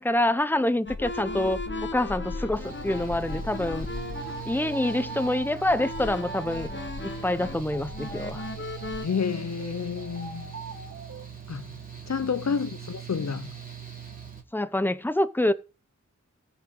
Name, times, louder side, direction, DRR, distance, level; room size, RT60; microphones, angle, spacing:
voice 1, 0.0-3.9 4.4-6.7 7.0-8.4 14.5-15.5, left 1 dB, 5° left, 0.9 m, -26 dB
sound 1, 0.9-9.1, left 3 dB, 35° left, 1.4 m, -36 dB
Mechanical fan, 2.5-14.4, right 8 dB, 25° right, 3.3 m, -42 dB
sound 2, 2.6-11.3, right 4 dB, 60° right, 1.6 m, -43 dB
voice 2, 9.0-10.5 11.5-11.7 12.1-13.5, left 6 dB, 60° left, 0.7 m, -30 dB
15.5 x 6.1 x 5.5 m
wide cardioid pair, 50°, 31 cm